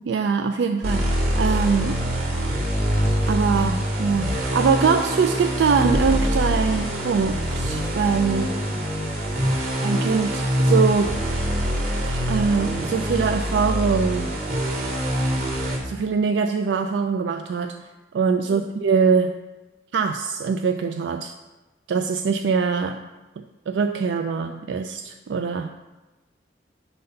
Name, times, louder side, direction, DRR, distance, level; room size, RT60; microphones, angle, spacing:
voice 1, 0.0-2.0 3.3-8.6 9.8-11.2 12.0-14.3 15.4-15.5 15.8-17.9 18.1-19.3 19.9-21.3 21.9-23.0 23.4-25.8, right 5 dB, 85° right, 7 dB, 0.3 m, -23 dB
sound 1, 0.8-15.8, equal, 55° right, 2.0 m, -24 dB
7.6 x 4.0 x 5.4 m, 1.1 s
head